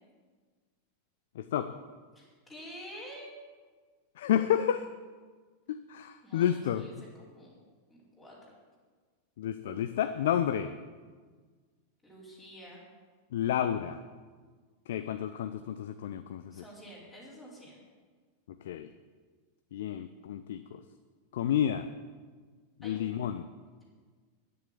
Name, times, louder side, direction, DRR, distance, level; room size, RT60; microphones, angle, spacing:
voice 1, 1.3-1.7 4.2-4.9 5.7-6.8 9.4-10.7 13.3-14.0 14.9-16.6 18.5-18.9 19.7-20.8 21.3-21.9 22.8-23.5, left 10 dB, 55° left, 10 dB, 0.5 m, -30 dB
voice 2, 2.1-3.3 6.2-7.6 7.9-8.4 12.0-12.8 16.5-17.8 22.8-23.0, equal, 5° left, -8 dB, 4.8 m, -49 dB
10.5 x 9.8 x 8.4 m, 1.5 s
figure-of-eight pair, 90°, 0 cm